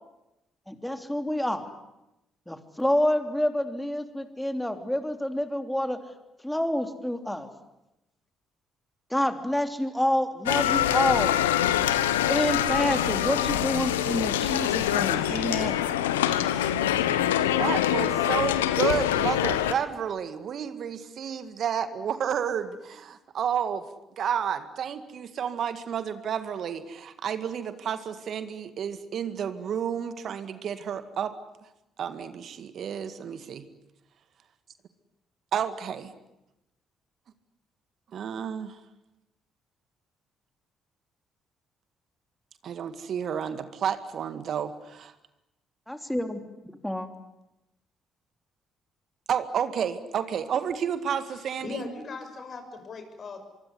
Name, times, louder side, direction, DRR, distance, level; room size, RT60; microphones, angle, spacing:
voice 1, 0.7-1.7 2.5-6.0 6.4-7.5 9.1-11.3 12.3-15.8 45.9-46.4 46.8-47.1, left 1 dB, 5° left, 7 dB, 3.2 m, -28 dB
sound 1, 10.5-19.7, left 11 dB, 90° left, 1.0 m, -25 dB
voice 2, 17.6-23.8 24.2-31.3 32.0-33.7 35.5-36.1 38.1-38.8 42.6-45.1 49.3-51.9, right 8 dB, 60° right, 10 dB, 2.0 m, -31 dB
voice 3, 51.3-53.4, left 4 dB, 50° left, 7 dB, 6.2 m, -39 dB
24.5 x 24.0 x 9.8 m, 0.92 s
hypercardioid pair, 45°, 0 cm